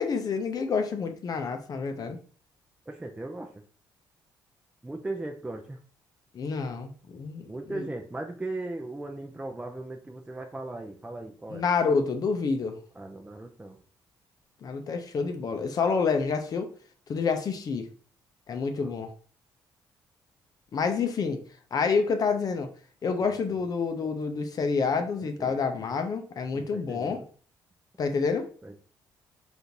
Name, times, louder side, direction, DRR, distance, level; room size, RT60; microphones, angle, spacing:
voice 1, 0.0-2.2 6.3-7.9 11.5-12.8 14.6-16.7 17.1-17.9 18.5-19.1 20.7-21.4 21.7-22.7 23.0-27.2 28.0-28.5, left 5 dB, 50° left, 6 dB, 0.5 m, -28 dB
voice 2, 2.9-3.6 4.8-5.8 7.5-11.7 13.0-13.8 18.8-18.9 23.2-23.4 25.2-25.7 26.5-27.3 28.6-28.8, right 2 dB, 10° right, 2 dB, 0.4 m, -38 dB
3.6 x 2.5 x 2.8 m, 0.43 s
cardioid pair, 80°, 8 cm